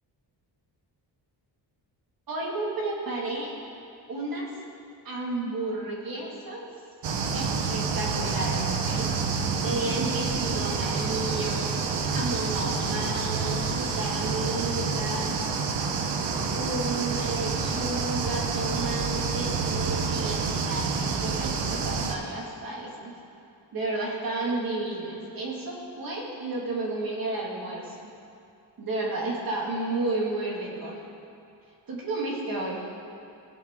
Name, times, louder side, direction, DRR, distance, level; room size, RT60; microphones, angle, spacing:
voice 1, 2.3-3.6 4.1-4.5 5.0-6.7 7.3-9.1 9.6-11.7 12.1-15.4 16.5-23.1 23.7-28.1 28.8-31.0 31.9-32.8, right 2 dB, 55° right, -3 dB, 2.1 m, -32 dB
sound 1, 7.0-22.2, right 5 dB, 75° right, 1.0 m, -28 dB
17.0 x 7.3 x 3.7 m, 2.6 s
wide cardioid pair, 145°, 42 cm